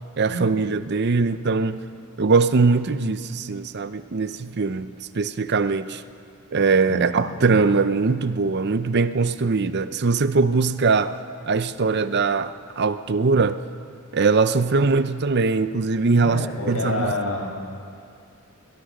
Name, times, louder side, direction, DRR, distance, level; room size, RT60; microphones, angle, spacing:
voice 1, 0.2-1.8 2.2-6.0 6.5-11.1 11.5-13.6 14.1-17.1, right 4 dB, 50° right, 12 dB, 0.6 m, -21 dB
voice 2, 6.9-7.6 16.1-17.4, left 1 dB, 75° left, -1 dB, 6.0 m, -28 dB
21.5 x 19.5 x 6.6 m, 2.3 s
head